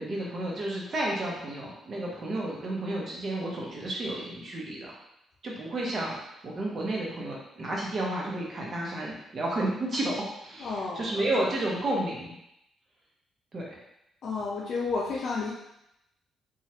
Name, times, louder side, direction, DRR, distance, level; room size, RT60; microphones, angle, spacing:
voice 1, 0.0-4.9 5.4-10.2 10.4-12.4 13.5-13.7, right 1 dB, 45° right, -3 dB, 0.9 m, -31 dB
voice 2, 10.6-11.1 14.2-15.5, left 4 dB, 60° left, -4 dB, 0.4 m, -31 dB
3.0 x 2.4 x 2.8 m, 0.82 s
cardioid pair, 90°, 0 cm